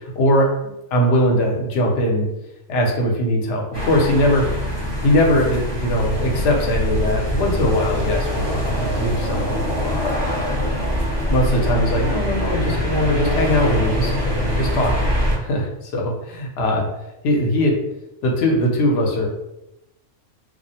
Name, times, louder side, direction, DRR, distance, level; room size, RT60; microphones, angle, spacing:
voice 1, 0.1-2.3 2.7-4.4 5.0-10.2 11.3-14.1 14.5-16.8 17.2-17.8 18.2-19.3, left 1 dB, 60° left, 0 dB, 0.8 m, -20 dB
sound 1, 3.7-15.4, equal, 35° left, 0.4 m, -23 dB
2.3 x 2.0 x 2.7 m, 0.88 s
omnidirectional pair, 1.4 m